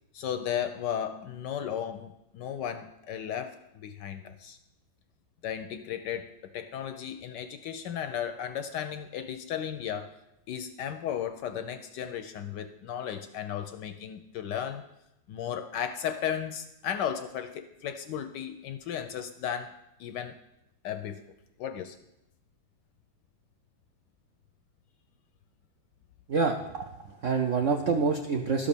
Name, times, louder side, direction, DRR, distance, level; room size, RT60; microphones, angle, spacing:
voice 1, 0.1-4.6 5.4-10.1 10.5-14.9 15.3-19.7 20.0-20.4 20.8-21.2 21.6-22.0, left 9 dB, 70° left, 9 dB, 1.1 m, -35 dB
voice 2, 26.3-26.9 27.2-28.7, right 4 dB, 70° right, 3 dB, 0.7 m, -26 dB
12.5 x 5.2 x 6.8 m, 0.89 s
omnidirectional pair, 2.2 m